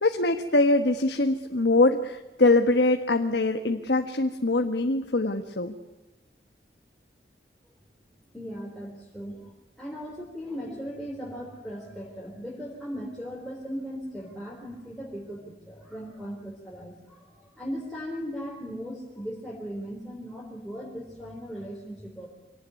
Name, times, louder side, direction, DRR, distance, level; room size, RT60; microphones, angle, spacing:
voice 1, 0.0-5.7, left 2 dB, 70° left, 5 dB, 1.3 m, -23 dB
voice 2, 8.3-22.3, equal, ahead, -4 dB, 3.8 m, -38 dB
25.5 x 18.0 x 9.6 m, 1.1 s
head